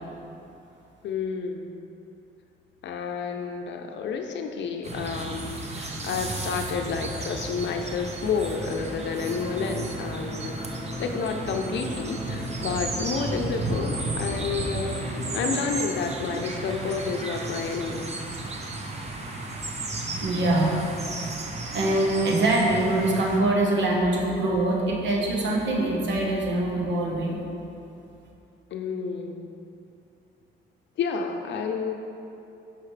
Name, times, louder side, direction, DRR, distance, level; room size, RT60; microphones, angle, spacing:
voice 1, 1.0-1.8 2.8-10.7 11.0-18.1 28.7-29.5 31.0-31.9, left 5 dB, 65° left, 5 dB, 0.6 m, -30 dB
sound 1, 4.8-23.4, right 2 dB, 35° right, 0.8 m, -33 dB
sound 2, 8.6-15.7, left 1 dB, 5° left, 0.9 m, -40 dB
voice 2, 20.2-20.8 21.7-27.4, right 2 dB, 65° right, -2 dB, 1.1 m, -23 dB
6.0 x 5.7 x 3.3 m, 2.8 s
cardioid pair, 90°, 20 cm